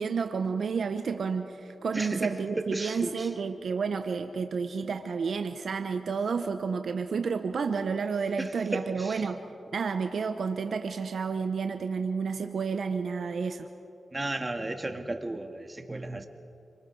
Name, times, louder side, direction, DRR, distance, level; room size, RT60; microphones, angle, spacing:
voice 1, 0.0-9.4 9.7-13.7, right 5 dB, 75° right, 8 dB, 0.9 m, -30 dB
voice 2, 1.9-3.3 8.4-9.2 14.1-16.3, right 2 dB, 25° right, 5 dB, 1.9 m, -34 dB
28.5 x 23.0 x 4.7 m, 2.6 s
cardioid pair, 55°, 0 cm